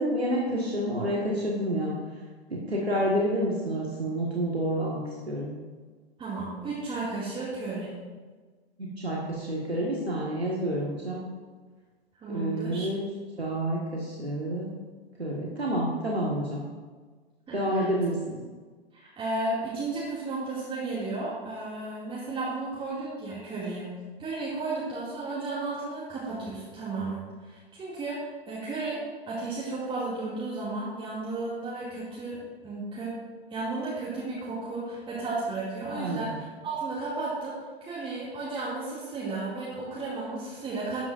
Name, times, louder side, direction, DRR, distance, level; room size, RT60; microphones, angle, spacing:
voice 1, 0.0-1.9 2.5-5.0 5.3-5.5 9.0-11.2 12.3-13.0 13.4-14.7 15.2-16.6 17.5-18.4 35.9-36.2, right 1 dB, 85° right, -4 dB, 1.8 m, -28 dB
voice 2, 6.2-7.9 12.2-12.9 17.5-17.9 18.9-23.9 24.2-28.2 28.5-29.0 29.3-33.1 33.5-41.0, right 3 dB, 15° right, -8 dB, 2.5 m, -33 dB
13.0 x 9.5 x 2.6 m, 1.4 s
figure-of-eight pair, 105°, 31 cm